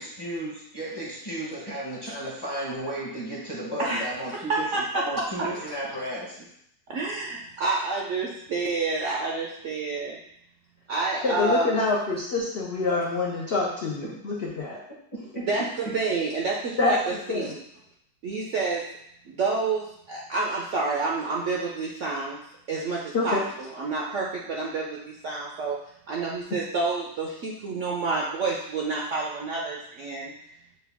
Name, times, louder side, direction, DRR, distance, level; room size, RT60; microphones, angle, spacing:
voice 1, 0.0-6.5 14.0-14.1 15.1-15.5 15.8-15.9, right 1 dB, 20° left, -6 dB, 0.6 m, -34 dB
voice 2, 4.5-5.2 6.9-10.2 10.9-11.8 15.5-17.6 18.2-18.8 19.3-22.4 22.7-25.8 26.1-30.3, right 3 dB, 65° right, -3 dB, 0.7 m, -29 dB
voice 3, 11.2-14.8 16.8-17.0 17.3-17.5 23.1-23.4, left 3 dB, 70° left, -3 dB, 0.5 m, -26 dB
6.6 x 2.3 x 3.4 m, 0.74 s
omnidirectional pair, 1.9 m